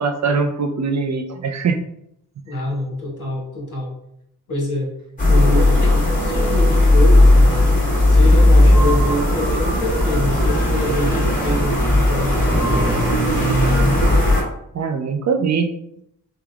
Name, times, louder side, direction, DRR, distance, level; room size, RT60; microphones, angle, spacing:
voice 1, 0.0-1.8 14.7-15.7, right 5 dB, 50° right, 5 dB, 0.4 m, -21 dB
voice 2, 2.4-3.9 4.5-4.9 5.3-7.7 8.0-13.1, left 1 dB, 55° left, -4 dB, 1.5 m, -26 dB
sound 1, 5.2-14.4, left 1 dB, 20° left, 1.3 m, -15 dB
3.4 x 2.3 x 2.3 m, 0.76 s
supercardioid pair, 45°, 37 cm